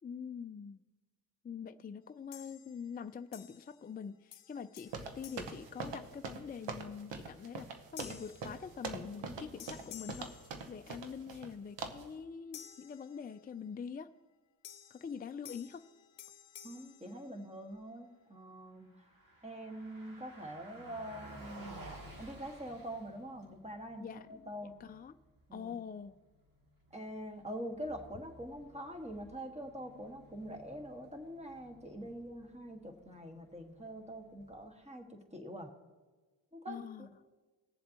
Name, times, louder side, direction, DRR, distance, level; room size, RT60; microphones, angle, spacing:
voice 1, 0.0-0.8 1.4-10.3 10.7-14.1 14.9-15.9 24.0-25.2 25.5-26.1 36.7-37.1, left 6 dB, 20° left, 9 dB, 0.4 m, -45 dB
sound 1, 2.3-3.0 3.3-4.0 4.3-6.5 7.0-7.3 8.0-9.3 9.6-11.2 12.5-13.7 14.6-17.9, left 10 dB, 75° left, 0.7 m, -54 dB
sound 2, 4.9-11.5 11.8-12.1, right 4 dB, 75° right, 1.1 m, -43 dB
voice 2, 16.6-18.9 19.4-21.8 22.2-24.7 25.5-25.7 26.9-35.7 36.5-37.1, equal, 15° right, 4 dB, 1.7 m, -44 dB
Car passing by, 18.7-34.9, right 1 dB, 50° right, 2.3 m, -56 dB
19.5 x 7.3 x 2.9 m, 1.3 s
cardioid pair, 60°, 43 cm